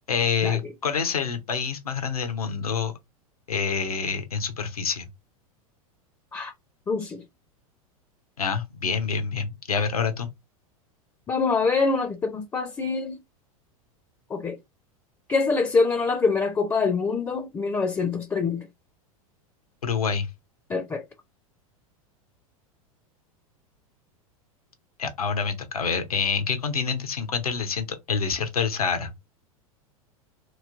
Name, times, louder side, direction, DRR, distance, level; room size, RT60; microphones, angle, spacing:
voice 1, 0.1-2.9 3.5-5.1 8.4-10.3 19.8-20.3 25.0-29.1, left 6 dB, 85° left, 0.8 m, -27 dB
voice 2, 6.9-7.2 11.3-13.2 14.3-14.6 15.3-18.7 20.7-21.0, left 4 dB, 15° left, 0.4 m, -25 dB
3.1 x 2.7 x 2.5 m
hypercardioid pair, 95°, 19 cm